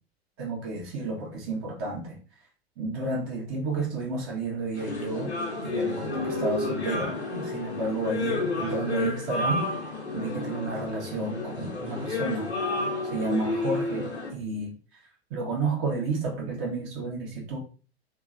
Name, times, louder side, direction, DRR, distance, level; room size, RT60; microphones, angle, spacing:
voice 1, 0.4-2.2 2.8-5.3 5.6-9.6 10.1-12.5 13.0-14.7 15.3-17.6, right 3 dB, 40° right, -3 dB, 1.4 m, -31 dB
sound 1, 4.7-14.3, left 2 dB, 85° left, 1.2 m, -31 dB
3.6 x 3.1 x 2.5 m, 0.37 s
figure-of-eight pair, 90°, 32 cm